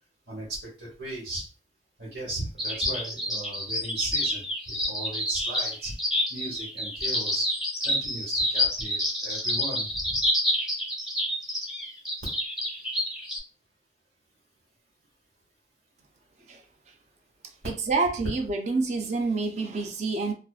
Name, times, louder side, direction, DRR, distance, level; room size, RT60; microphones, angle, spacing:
voice 1, 0.3-1.4 2.0-5.9 6.3-7.5 7.8-10.2, right 1 dB, 70° right, -7 dB, 1.1 m, -36 dB
sound 1, 2.6-13.4, left 1 dB, 5° right, 0.7 m, -28 dB
voice 2, 17.6-20.3, right 3 dB, 40° right, 5 dB, 0.4 m, -27 dB
2.4 x 2.4 x 2.3 m, 0.37 s
head